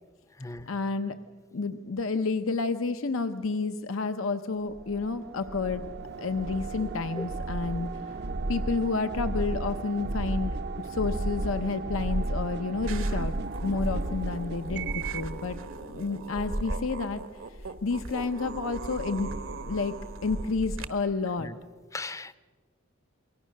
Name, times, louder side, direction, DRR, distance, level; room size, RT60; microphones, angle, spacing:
voice 1, 0.7-1.2 1.5-5.9 6.2-7.9 8.5-13.3 13.6-15.6 15.9-17.2 17.5-19.9 20.2-21.5, left 4 dB, 75° left, 8 dB, 0.8 m, -30 dB
sound 1, 4.7-15.3, right 2 dB, 55° right, 0.7 m, -33 dB
sound 2, 12.9-20.9, right 2 dB, 75° right, 1.3 m, -36 dB
voice 2, 21.9-22.4, left 2 dB, 15° left, 15 dB, 0.6 m, -37 dB
28.5 x 23.0 x 6.5 m, 1.5 s
head